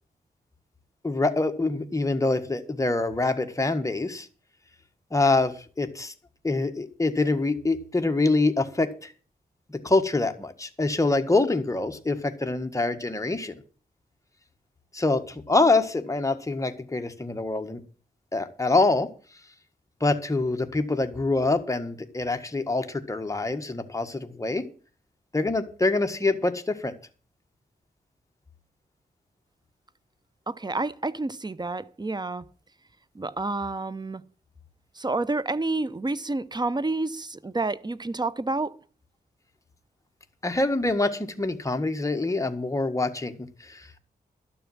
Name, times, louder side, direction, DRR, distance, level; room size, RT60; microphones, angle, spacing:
voice 1, 1.0-4.3 5.1-6.1 6.4-9.1 9.8-13.5 14.9-17.8 18.3-19.1 20.0-24.6 25.3-26.9 40.4-43.3 43.6-44.0, left 2 dB, 20° left, 1.6 m, -25 dB
voice 2, 30.5-32.4 33.1-34.2 35.0-38.8, right 2 dB, 25° right, 0.8 m, -29 dB
12.0 x 7.0 x 7.3 m
cardioid pair, 65°, 17 cm